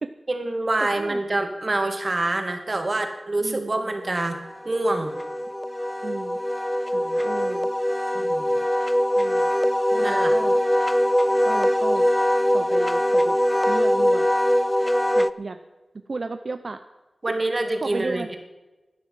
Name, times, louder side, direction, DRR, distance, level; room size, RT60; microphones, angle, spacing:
voice 1, 0.3-5.1 8.1-8.5 10.0-10.3 17.2-18.4, right 2 dB, 40° right, 6 dB, 2.0 m, -26 dB
voice 2, 0.8-1.4 3.4-3.7 6.0-6.4 6.9-7.7 9.2-9.5 9.9-10.6 11.5-12.1 12.5-13.4 13.7-14.3 15.1-15.6 16.1-16.8 17.3-17.4 17.8-18.3, right 3 dB, 55° right, 10 dB, 0.6 m, -33 dB
Wind instrument woodwind instrument, 4.3-15.3, equal, 10° left, 0.5 m, -22 dB
12.0 x 10.5 x 7.5 m, 1.1 s
wide cardioid pair, 85°, 0 cm